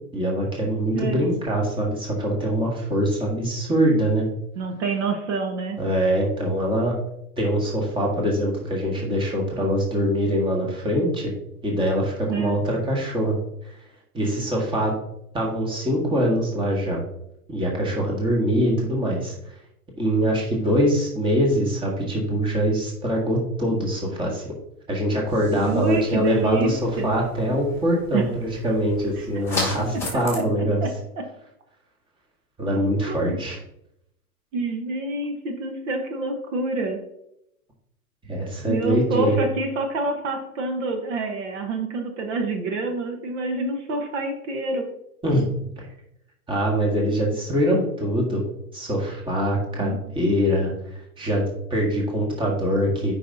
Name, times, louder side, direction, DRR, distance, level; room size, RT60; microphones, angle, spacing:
voice 1, 0.1-4.3 5.8-6.9 7.4-11.3 11.6-13.4 14.1-14.9 15.3-17.0 17.5-19.3 20.0-24.4 24.9-30.8 32.6-33.6 38.2-39.4 45.2-45.5 45.8-45.9 46.5-48.4 48.7-53.1, equal, 10° right, -1 dB, 1.5 m, -23 dB
voice 2, 0.9-1.3 4.6-5.8 12.3-12.6 25.6-27.1 28.1-28.2 29.2-29.3 30.1-30.2 30.8-31.2 33.1-33.4 34.5-37.0 38.7-44.9 49.8-50.0, right 3 dB, 50° right, 4 dB, 1.2 m, -27 dB
sound 1, 25.3-30.4, left 2 dB, 5° left, 2.1 m, -35 dB
8.4 x 5.4 x 2.7 m, 0.79 s
hypercardioid pair, 125°, 46 cm